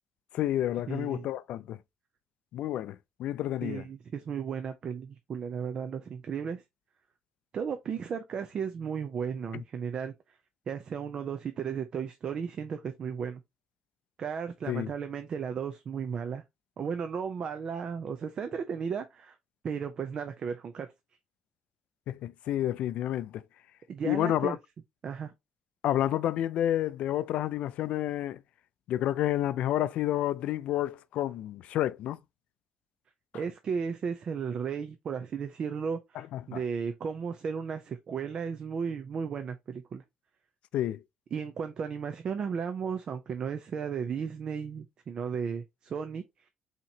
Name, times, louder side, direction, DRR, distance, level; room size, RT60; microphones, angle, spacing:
voice 1, 0.3-1.8 2.5-3.8 9.5-9.6 14.7-14.9 22.1-23.4 24.0-24.6 25.8-28.4 28.9-32.2 36.2-36.6 40.7-41.0, left 12 dB, 70° left, 0.3 m, -30 dB
voice 2, 0.9-1.3 3.6-6.6 7.5-10.1 10.7-13.4 14.2-16.4 16.8-19.4 19.6-20.9 23.9-24.6 25.0-25.3 33.3-40.0 41.3-46.2, right 6 dB, 40° right, 0.5 m, -34 dB
5.7 x 2.9 x 2.8 m
cardioid pair, 170°, 2 cm